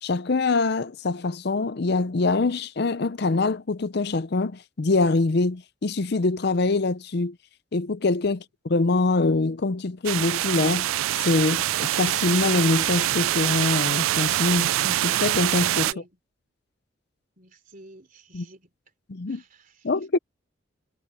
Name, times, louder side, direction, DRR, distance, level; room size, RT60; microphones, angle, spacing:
voice 1, 0.0-7.4 7.7-8.4 8.7-15.9 18.3-18.4 19.1-19.4 19.8-20.2, left 3 dB, 50° left, 0.5 m, -24 dB
sound 1, 10.0-15.9, right 14 dB, 80° right, 0.3 m, -24 dB
voice 2, 15.8-16.2 17.4-18.7 19.3-19.9, right 1 dB, 40° right, 3.6 m, -50 dB
head